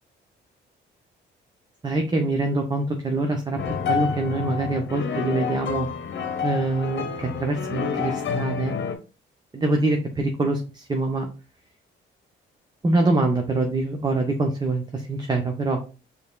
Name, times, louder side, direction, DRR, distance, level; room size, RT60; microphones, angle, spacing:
voice 1, 1.8-5.9 6.4-8.7 9.5-11.3 12.8-15.8, right 2 dB, 20° right, 4 dB, 0.7 m, -24 dB
sound 1, 3.6-9.0, left 6 dB, 65° left, 0.9 m, -29 dB
5.2 x 3.3 x 2.3 m, 0.34 s
cardioid pair, 90°, 20 cm